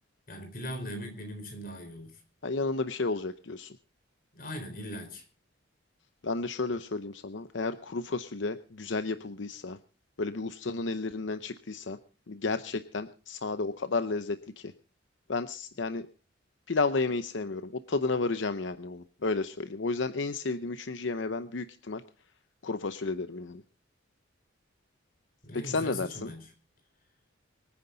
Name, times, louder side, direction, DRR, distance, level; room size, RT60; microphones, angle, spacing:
voice 1, 0.3-2.2 4.3-5.2 25.4-26.5, equal, 45° left, 5 dB, 4.3 m, -40 dB
voice 2, 2.4-3.8 6.2-9.8 10.2-12.0 12.3-14.7 15.3-16.1 16.7-22.0 22.6-23.6 25.5-26.3, left 3 dB, 80° left, 11 dB, 0.7 m, -32 dB
25.0 x 9.7 x 3.9 m, 0.36 s
head